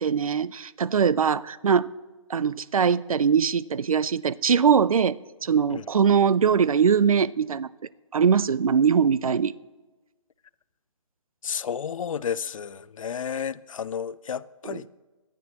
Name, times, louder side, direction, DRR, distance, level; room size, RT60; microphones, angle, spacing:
voice 1, 0.0-1.9 2.3-7.7 8.1-9.5 14.7-14.8, right 6 dB, 85° right, 0.5 m, -22 dB
voice 2, 11.4-14.9, left 7 dB, 70° left, 0.5 m, -32 dB
19.0 x 12.0 x 2.9 m
hypercardioid pair, 155°, 18 cm